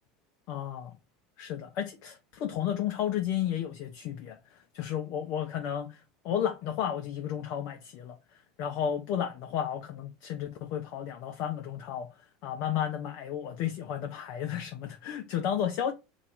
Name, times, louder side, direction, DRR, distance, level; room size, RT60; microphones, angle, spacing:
voice 1, 0.5-0.9 1.4-4.4 4.7-8.2 8.6-12.1 12.4-15.9, left 9 dB, 55° left, 0.5 m, -32 dB
3.0 x 2.6 x 3.9 m
figure-of-eight pair, 75°, 0 cm